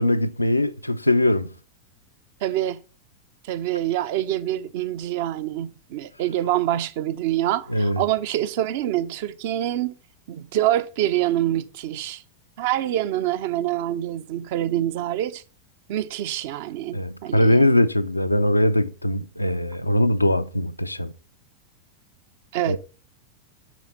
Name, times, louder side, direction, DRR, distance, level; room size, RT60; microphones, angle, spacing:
voice 1, 0.0-1.5 7.7-8.0 16.9-21.1 22.7-22.8, left 1 dB, 85° left, 0.5 m, -21 dB
voice 2, 2.4-2.8 3.4-9.9 10.3-12.2 12.6-15.4 15.9-17.7 22.5-22.8, right 13 dB, 50° right, 0.7 m, -26 dB
7.2 x 6.3 x 5.8 m
figure-of-eight pair, 90°, 0 cm